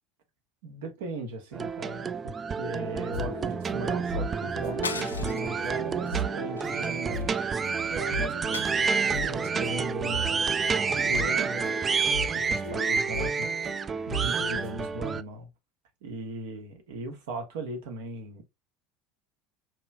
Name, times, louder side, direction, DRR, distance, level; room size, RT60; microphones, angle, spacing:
voice 1, 0.6-7.6 7.9-10.4 10.9-11.7 12.3-13.5 14.1-15.5 16.0-18.4, right 2 dB, 70° right, 1.2 m, -38 dB
sound 1, 1.5-15.2, right 5 dB, 25° right, 0.3 m, -29 dB
sound 2, 2.8-14.9, equal, 90° right, 1.9 m, -38 dB
sound 3, 4.8-5.6 6.0-6.2 6.6-7.5 8.5-9.3, left 5 dB, 85° left, 0.4 m, -38 dB
5.3 x 3.0 x 2.3 m
figure-of-eight pair, 70°, 0 cm